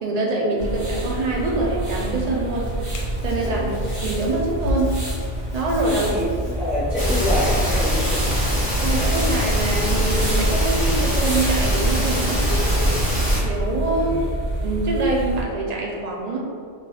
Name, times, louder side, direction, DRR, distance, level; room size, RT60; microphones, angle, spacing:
voice 1, 0.0-2.7 3.2-3.7 4.0-5.0 5.5-6.0 8.8-12.8 13.4-14.1 14.6-16.4, right 2 dB, 65° right, -3 dB, 0.4 m, -24 dB
sound 1, 0.6-15.4, equal, 30° right, 0.9 m, -28 dB
Hands, 2.6-7.6, equal, 75° left, 0.8 m, -33 dB
voice 2, 3.4-3.9 5.9-8.3 13.9-14.2, equal, 5° right, -11 dB, 0.9 m, -27 dB
sound 2, 7.0-13.4, equal, 20° left, 1.1 m, -22 dB
3.7 x 2.3 x 3.2 m, 2.2 s
omnidirectional pair, 1.2 m